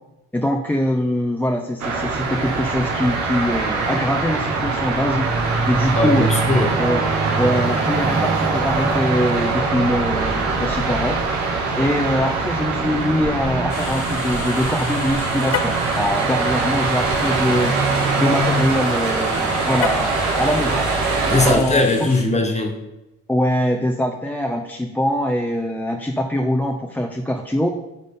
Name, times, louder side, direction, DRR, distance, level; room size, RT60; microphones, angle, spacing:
voice 1, 0.3-5.3 5.7-6.3 6.8-7.1 7.4-11.2 11.8-17.7 18.2-20.9 21.3-21.9 23.3-27.7, left 1 dB, 5° left, 2 dB, 0.5 m, -23 dB
sound 1, 1.8-21.5, right 3 dB, 70° right, 1.7 m, -22 dB
voice 2, 6.0-6.8 21.2-22.7, left 2 dB, 20° left, 3 dB, 1.4 m, -19 dB
sound 2, 13.7-22.2, left 3 dB, 80° left, 1.8 m, -35 dB
Car, 15.4-15.9 19.7-20.2, left 8 dB, 55° left, 0.6 m, -26 dB
11.0 x 3.8 x 3.7 m, 0.98 s
cardioid pair, 90°, 30 cm